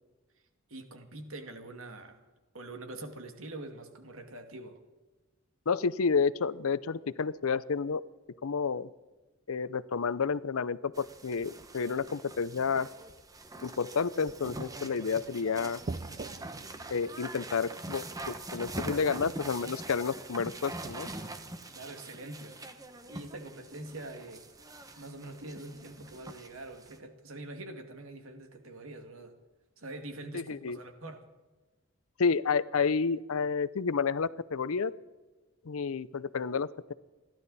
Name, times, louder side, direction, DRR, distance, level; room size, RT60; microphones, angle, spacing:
voice 1, 0.7-2.2 2.5-4.8 21.7-22.6 23.1-24.4 25.0-29.3 29.8-31.3, right 2 dB, 75° right, 5 dB, 2.2 m, -44 dB
voice 2, 5.7-8.0 8.4-8.9 9.5-12.9 13.6-15.8 16.9-21.1 30.3-30.8 32.2-34.9 35.6-36.9, left 5 dB, 85° left, 18 dB, 0.6 m, -30 dB
sound 1, 10.4-10.6 11.8-11.9 12.9-13.4 14.0-23.2, right 3 dB, 35° right, 0.5 m, -48 dB
sound 2, 10.9-27.0, right 2 dB, 15° right, 1.0 m, -44 dB
29.5 x 12.0 x 4.1 m, 1.2 s
head